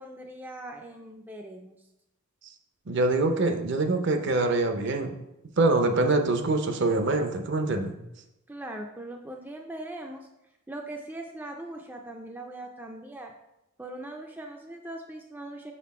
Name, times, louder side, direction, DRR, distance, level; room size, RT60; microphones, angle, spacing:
voice 1, 0.0-1.8 8.5-10.3 10.7-13.3 13.8-15.7, right 1 dB, 10° right, 2 dB, 0.3 m, -40 dB
voice 2, 2.9-5.1 5.6-8.0, right 2 dB, 55° right, 6 dB, 0.6 m, -24 dB
6.0 x 4.3 x 4.1 m, 0.89 s
head